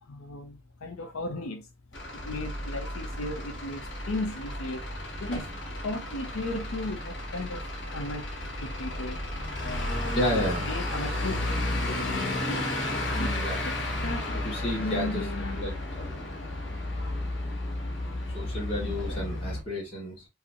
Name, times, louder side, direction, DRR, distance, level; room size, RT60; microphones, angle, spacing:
voice 1, 0.0-1.7 2.1-5.5 5.8-8.3 8.6-11.3 11.9-12.6 13.2-13.4 13.6-14.4 14.8-15.6 17.0-17.2 18.0-18.2 18.8-19.4, left 2 dB, 85° left, 0.6 m, -36 dB
Truck / Idling, 1.9-19.6, left 1 dB, 55° left, 1.0 m, -33 dB
voice 2, 10.1-10.7 11.4-11.6 13.1-13.7 14.3-15.3 15.6-15.7 18.3-20.3, equal, 25° left, 1.8 m, -31 dB
4.7 x 2.0 x 2.9 m
head